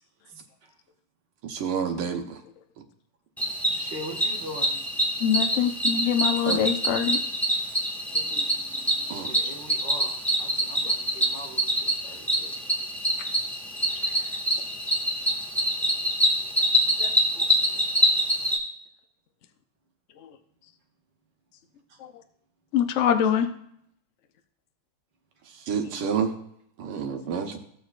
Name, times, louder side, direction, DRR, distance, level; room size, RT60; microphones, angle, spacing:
voice 1, 0.3-0.7 3.7-4.8 9.1-12.6 13.9-14.4 21.9-22.0, equal, 55° right, -1 dB, 2.3 m, -42 dB
voice 2, 1.5-2.2 6.5-6.6 9.1-9.3 25.7-26.3 26.8-27.6, right 7 dB, 80° right, 4 dB, 1.9 m, -28 dB
Cricket, 3.4-18.6, equal, ahead, 0.6 m, -25 dB
voice 3, 5.2-7.2 8.1-8.5 13.2-13.3 17.0-17.5 20.2-20.3 22.0-22.1 22.7-23.5 25.8-26.0 27.3-27.4, left 9 dB, 85° left, 7 dB, 0.6 m, -25 dB
15.5 x 6.7 x 2.4 m, 0.72 s
omnidirectional pair, 2.3 m